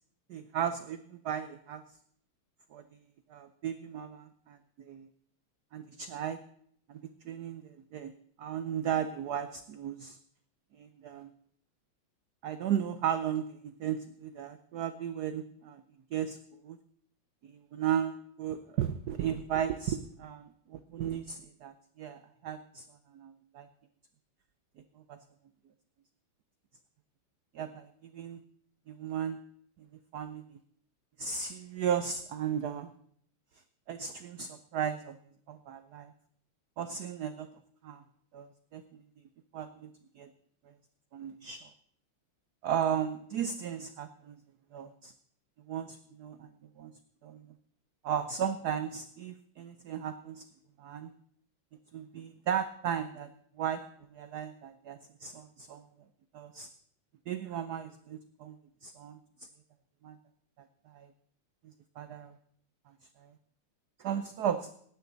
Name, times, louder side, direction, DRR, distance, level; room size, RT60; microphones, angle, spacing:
voice 1, 0.3-1.8 2.7-2.8 3.3-5.1 5.7-6.4 6.9-7.0 7.3-8.1 8.4-10.2 10.8-11.3 12.4-15.8 16.1-16.4 16.6-16.8 17.7-22.8 23.1-23.7 25.1-25.2 27.5-28.4 28.9-29.4 30.1-30.4 31.2-32.9 33.9-35.2 35.5-36.1 36.8-37.5 37.8-38.0 38.3-38.8 39.5-39.9 40.2-40.3 41.1-41.7 42.6-44.4 44.7-45.1 45.7-46.5 46.8-46.9 47.2-47.5 48.0-50.4 50.8-51.1 51.9-53.3 53.6-53.8 54.1-55.8 56.3-56.7 57.3-58.6 58.8-59.5 60.0-60.2 60.9-61.1 61.6-62.3 63.2-63.3 64.0-64.7, right 9 dB, 80° right, 11 dB, 0.8 m, -35 dB
16.0 x 10.5 x 3.9 m, 0.65 s
omnidirectional pair, 2.4 m